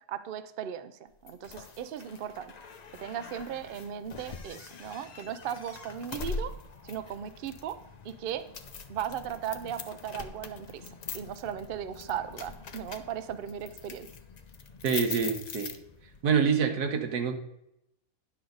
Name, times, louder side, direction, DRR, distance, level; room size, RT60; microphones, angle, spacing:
voice 1, 0.1-2.5 3.0-6.5 6.8-7.8 8.0-8.4 8.9-10.8 11.1-14.1, right 9 dB, 65° right, 11 dB, 0.5 m, -37 dB
sound 1, 1.3-16.2, left 5 dB, 75° left, 0.3 m, -43 dB
voice 2, 14.8-15.7 16.2-17.3, right 6 dB, 85° right, 6 dB, 1.6 m, -26 dB
10.0 x 6.4 x 3.9 m, 0.82 s
omnidirectional pair, 1.6 m